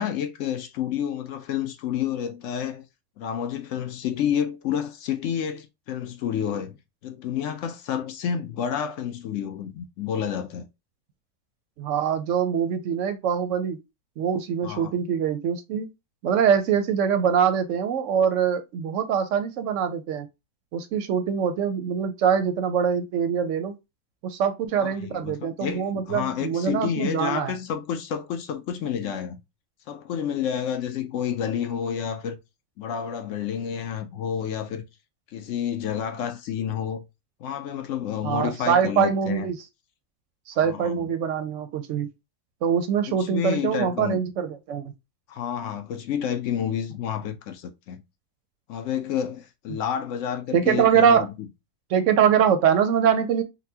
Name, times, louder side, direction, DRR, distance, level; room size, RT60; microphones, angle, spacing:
voice 1, 0.0-2.8 3.2-6.8 7.0-10.7 14.6-14.9 24.8-29.4 29.9-32.4 32.8-34.8 35.3-37.0 37.4-39.5 40.6-41.1 43.1-44.2 45.3-48.0 48.7-51.5, left 8 dB, 65° left, 0.8 m, -29 dB
voice 2, 11.8-13.8 14.2-15.9 16.2-20.3 20.7-23.7 24.2-27.5 38.2-39.6 40.5-42.1 42.6-44.9 50.5-51.3 51.9-53.4, right 8 dB, 65° right, 0.8 m, -23 dB
4.0 x 2.2 x 2.6 m
omnidirectional pair, 1.6 m